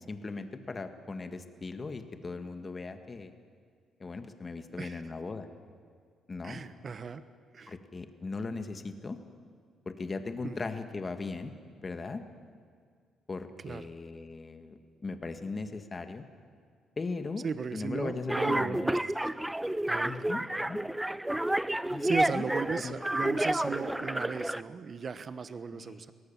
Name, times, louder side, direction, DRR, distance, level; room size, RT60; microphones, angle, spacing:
voice 1, 0.1-3.3 4.0-5.5 6.3-6.6 7.7-9.2 9.9-12.2 13.3-16.2 17.0-17.5 17.7-18.8 20.0-20.8 21.9-22.4 22.8-22.9 25.7-26.0, left 3 dB, 30° left, 8 dB, 1.8 m, -38 dB
voice 2, 6.4-7.2 7.5-7.8 10.4-10.7 13.6-13.8 17.4-19.0 19.9-20.4 22.0-26.1, right 5 dB, 45° right, 13 dB, 1.1 m, -36 dB
sound 1, 18.3-24.6, right 1 dB, 5° right, 0.5 m, -30 dB
23.0 x 18.0 x 7.3 m, 2.1 s
cardioid pair, 90°, 0 cm